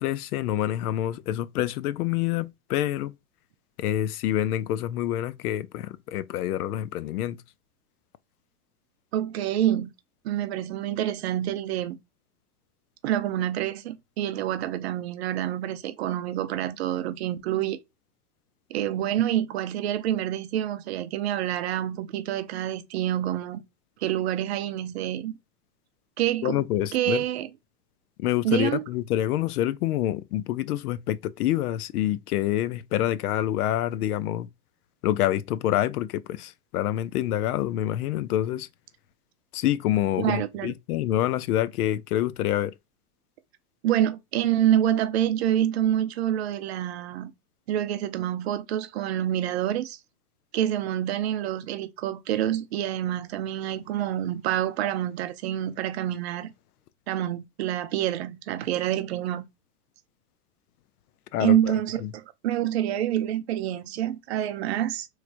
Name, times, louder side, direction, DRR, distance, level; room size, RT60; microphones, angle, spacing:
voice 1, 0.0-3.1 3.8-7.4 26.4-27.2 28.2-34.5 35.0-38.7 39.5-42.7 61.3-61.7 62.0-62.1, left 12 dB, 70° left, 0.6 m, -27 dB
voice 2, 9.1-9.9 10.2-12.0 13.0-17.8 18.7-23.6 24.0-25.4 26.2-26.6 26.9-27.5 28.4-28.8 40.2-40.7 43.8-47.3 47.7-50.0 50.5-56.5 57.1-59.4 61.4-65.1, right 12 dB, 45° right, 0.5 m, -27 dB
4.6 x 3.2 x 2.4 m
supercardioid pair, 170°, 47 cm